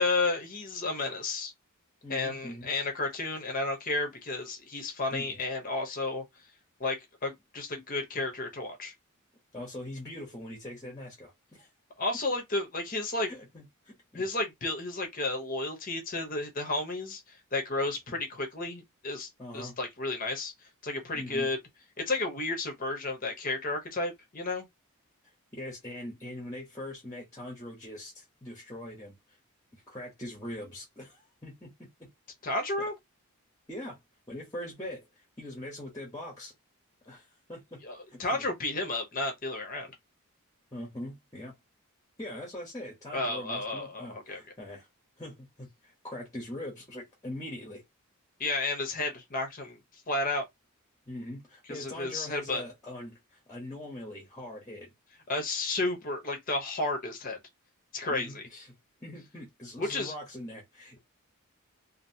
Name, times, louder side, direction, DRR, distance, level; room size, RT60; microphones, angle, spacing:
voice 1, 0.0-1.5 2.1-6.2 6.8-8.9 12.0-13.3 14.1-20.5 20.8-21.6 22.0-24.7 32.4-32.9 37.8-39.9 43.1-44.4 48.4-49.8 50.1-50.5 51.7-52.6 55.3-57.4 57.9-58.5 59.8-60.1, left 2 dB, 40° left, 0.8 m, -32 dB
voice 2, 2.0-2.7 5.1-5.4 9.5-11.7 13.3-14.3 18.1-18.2 19.4-19.7 21.1-21.5 25.5-29.1 29.7-32.1 33.7-34.0 34.3-36.5 37.0-37.8 38.1-38.5 40.7-41.5 42.2-44.9 45.2-47.8 51.1-54.9 58.1-58.7 59.0-61.0, left 1 dB, 15° left, 1.0 m, -42 dB
2.8 x 2.6 x 2.7 m
head